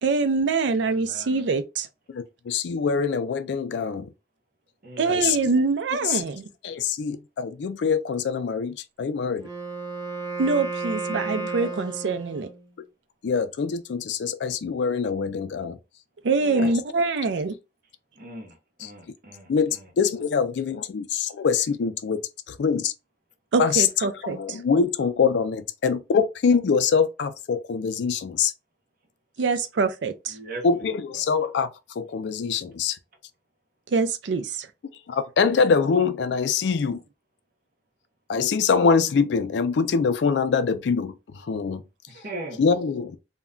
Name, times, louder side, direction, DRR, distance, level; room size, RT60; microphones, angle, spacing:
voice 1, 0.0-1.9 5.0-6.5 10.4-12.5 16.2-17.5 23.5-24.4 29.4-30.4 33.9-34.7, right 4 dB, 80° right, 0.4 m, -24 dB
voice 2, 0.9-1.4 4.8-5.4 16.4-16.8 18.2-18.5 18.8-19.5 30.3-30.6 42.1-42.6, right 2 dB, 55° right, 0.8 m, -38 dB
voice 3, 2.1-4.1 5.1-5.4 6.0-6.2 6.6-9.5 11.3-11.7 13.2-15.8 16.6-16.7 18.8-18.9 19.5-22.2 22.5-22.9 23.6-28.5 30.6-31.7 32.0-33.0 35.1-37.0 38.3-41.1 41.5-41.8 42.6-43.2, left 5 dB, 70° left, 0.4 m, -24 dB
Wind instrument woodwind instrument, 9.4-12.7, right 3 dB, 25° right, 0.7 m, -33 dB
2.2 x 2.1 x 3.6 m
head